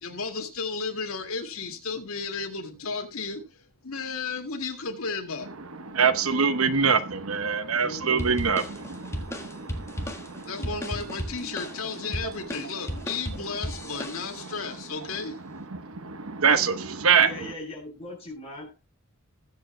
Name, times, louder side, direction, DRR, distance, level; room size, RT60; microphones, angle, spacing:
voice 1, 0.0-5.5 10.4-15.4, left 4 dB, 75° left, 2.2 m, -33 dB
voice 2, 5.9-10.7 13.9-14.0 14.4-14.5 15.5-17.3, right 6 dB, 75° right, 1.0 m, -25 dB
voice 3, 7.7-8.5 11.9-12.0 17.2-18.7, left 1 dB, 30° left, 6.6 m, -40 dB
sound 1, 8.2-14.6, equal, 15° left, 1.5 m, -36 dB
20.5 x 7.6 x 2.2 m
head